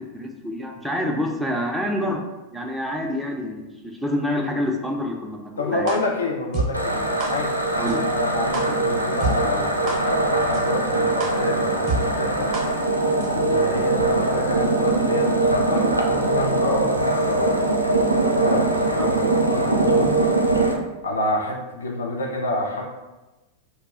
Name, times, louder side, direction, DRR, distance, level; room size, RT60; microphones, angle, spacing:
voice 1, 0.0-2.2 2.5-6.0 7.8-8.0 19.0-19.1, left 1 dB, 5° right, 1 dB, 0.4 m, -27 dB
voice 2, 5.6-7.0 7.3-12.5 13.3-17.5 18.2-20.2 21.0-22.8, left 2 dB, 70° left, 1 dB, 0.4 m, -29 dB
sound 1, 5.9-6.0 6.5-6.6 7.2-7.3 7.9-8.0 8.5-8.6 9.2-9.3 9.9-10.0 10.5-10.6 11.2-11.3 11.9-12.0 12.5-12.6 13.2-13.3, right 4 dB, 40° right, 0.6 m, -25 dB
sound 2, 6.7-20.7, right 2 dB, 90° right, 0.3 m, -21 dB
2.3 x 2.0 x 3.5 m, 1.1 s
figure-of-eight pair, 90°, 0 cm